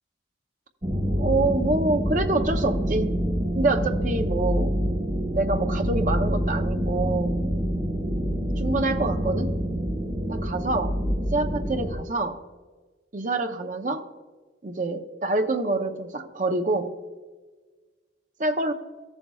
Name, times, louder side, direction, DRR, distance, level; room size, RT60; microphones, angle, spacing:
sound 1, 0.8-12.0, equal, 30° right, 1.6 m, -26 dB
voice 1, 1.2-3.2 3.5-4.8 5.3-7.5 8.6-9.5 10.3-11.0 11.3-12.4 13.1-14.1 14.6-17.0 18.4-18.7, right 2 dB, 45° right, 6 dB, 0.7 m, -26 dB
14.5 x 7.0 x 2.3 m, 1.4 s
head